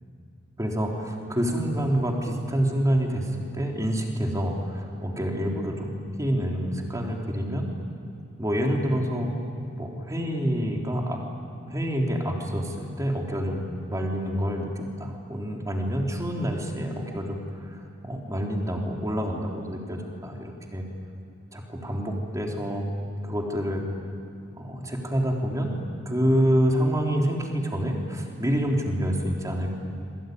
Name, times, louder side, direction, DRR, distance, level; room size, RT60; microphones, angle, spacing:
voice 1, 0.6-3.3 3.5-5.9 6.2-7.7 8.4-9.3 9.7-11.2 11.7-17.8 18.0-20.8 21.5-22.9 23.2-23.9 24.6-25.8 26.0-29.7, equal, 15° right, 0 dB, 3.4 m, -27 dB
26.5 x 23.0 x 9.4 m, 2.6 s
head